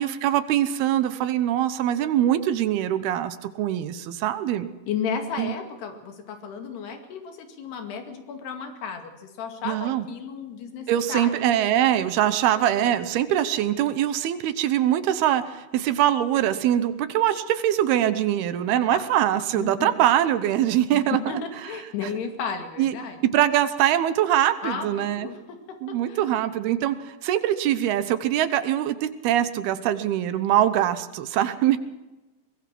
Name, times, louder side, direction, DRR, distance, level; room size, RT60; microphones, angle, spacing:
voice 1, 0.0-4.7 5.4-5.5 9.6-10.1 10.9-21.2 22.8-23.0 23.3-25.3 25.8-31.8, right 11 dB, 75° right, 12 dB, 2.9 m, -23 dB
voice 2, 4.9-11.5 18.9-19.0 19.5-19.9 20.9-23.2 24.6-25.6 25.9-26.3, left 6 dB, 75° left, 6 dB, 4.3 m, -33 dB
23.0 x 20.0 x 6.0 m, 1.1 s
omnidirectional pair, 4.7 m